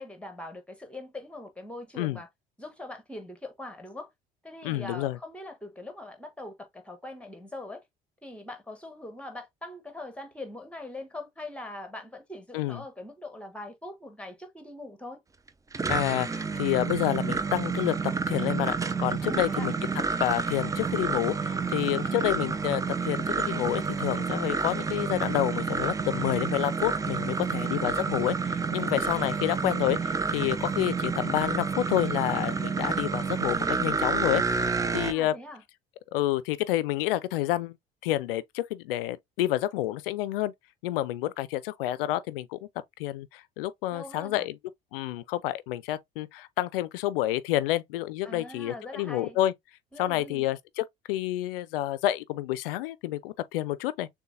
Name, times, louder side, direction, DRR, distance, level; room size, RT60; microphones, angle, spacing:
voice 1, 0.0-2.3 2.6-4.1 4.4-7.8 8.2-15.2 19.2-19.7 27.2-27.8 34.7-35.6 43.9-44.5 48.2-49.4 49.9-50.5, left 1 dB, 5° left, 1.4 m, -42 dB
voice 2, 4.6-5.2 12.5-12.8 15.9-19.7 20.2-35.3 36.1-37.8 38.0-40.5 40.8-42.6 43.0-44.6 44.9-49.5 50.0-54.1, left 14 dB, 70° left, 0.5 m, -29 dB
sound 1, 15.5-35.1, right 5 dB, 10° right, 0.4 m, -29 dB
6.6 x 2.2 x 2.6 m
figure-of-eight pair, 55°, 29 cm